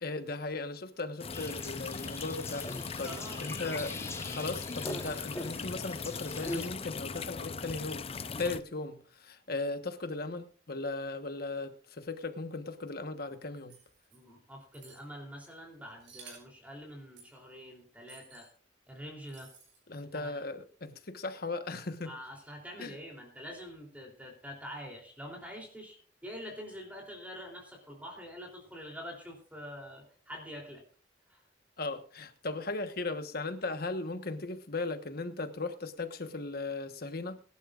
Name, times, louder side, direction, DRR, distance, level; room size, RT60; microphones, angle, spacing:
voice 1, 0.0-13.7 19.9-22.1 22.8-23.0 31.8-37.4, left 3 dB, 55° left, 1.3 m, -37 dB
sound 1, 1.2-8.6, left 5 dB, 35° left, 0.6 m, -39 dB
sound 2, 1.3-6.7, left 2 dB, 15° left, 1.0 m, -42 dB
voice 2, 3.0-3.5 14.1-18.5 18.9-19.5 20.0-20.4 22.0-26.0 26.2-30.8 31.3-31.4, equal, 10° right, 3.3 m, -45 dB
sound 3, 13.7-14.2 14.7-15.0 16.0-16.5 17.2-17.4 18.1-18.5 19.3-19.8, right 5 dB, 85° right, 6.3 m, -54 dB
22.5 x 12.0 x 2.5 m
head